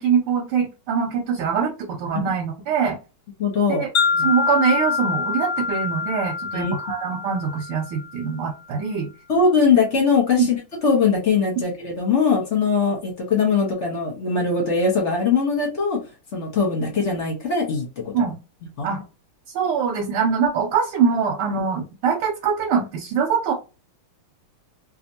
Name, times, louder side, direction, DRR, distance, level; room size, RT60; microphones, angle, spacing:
voice 1, 0.0-3.0 3.7-3.9 4.2-9.1 10.4-10.5 18.1-18.4 18.8-19.0 19.5-23.5, right 6 dB, 80° right, -1 dB, 1.6 m, -23 dB
voice 2, 3.4-3.8 4.1-4.3 6.5-6.7 9.3-10.6 10.8-16.0 16.3-18.1 18.8-18.9, left 5 dB, 40° left, -1 dB, 1.2 m, -21 dB
Wind chime, 3.9-8.2, left 5 dB, 60° left, 1.0 m, -25 dB
3.3 x 2.9 x 2.7 m, 0.30 s
omnidirectional pair, 2.4 m